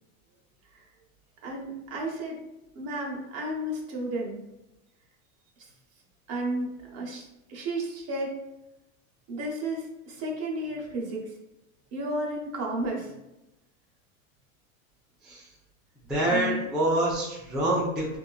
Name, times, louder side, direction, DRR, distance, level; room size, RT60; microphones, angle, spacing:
voice 1, 1.4-2.4 2.7-4.4 5.6-5.7 6.3-7.2 7.5-8.3 9.3-11.3 11.9-13.1 16.3-16.7, right 1 dB, 40° right, -1 dB, 0.8 m, -32 dB
voice 2, 16.1-18.2, right 1 dB, ahead, -7 dB, 0.3 m, -26 dB
2.9 x 2.4 x 2.3 m, 0.94 s
hypercardioid pair, 110°, 41 cm